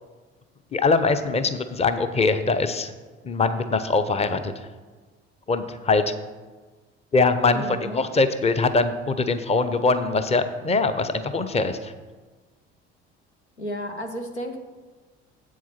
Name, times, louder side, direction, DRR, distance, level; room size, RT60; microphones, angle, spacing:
voice 1, 0.7-2.9 3.2-4.5 5.5-6.0 7.1-11.9, left 3 dB, 20° left, 10 dB, 0.8 m, -22 dB
voice 2, 7.5-8.0 13.6-14.6, equal, 90° left, 5 dB, 0.9 m, -32 dB
8.2 x 7.3 x 5.9 m, 1.3 s
figure-of-eight pair, 55°, 32 cm